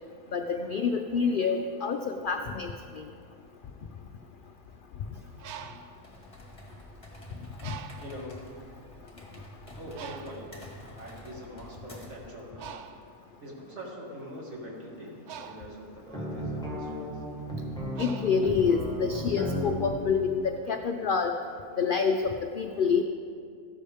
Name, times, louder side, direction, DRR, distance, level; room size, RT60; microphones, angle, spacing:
voice 1, 0.3-3.0 18.0-21.4 21.8-23.0, left 5 dB, 75° left, 5 dB, 0.4 m, -27 dB
Bird, 5.2-7.1 7.6-8.3 9.0-9.1 9.4-19.1, right 7 dB, 85° right, 1.1 m, -46 dB
sound 1, 6.0-12.3, equal, 25° left, 1.6 m, -48 dB
voice 2, 8.0-8.5 9.8-10.5 10.9-12.7 13.4-17.2, equal, 50° right, -3 dB, 2.2 m, -43 dB
sound 2, 16.1-19.9, equal, 5° left, 1.5 m, -34 dB
14.0 x 11.5 x 3.5 m, 2.3 s
omnidirectional pair, 1.5 m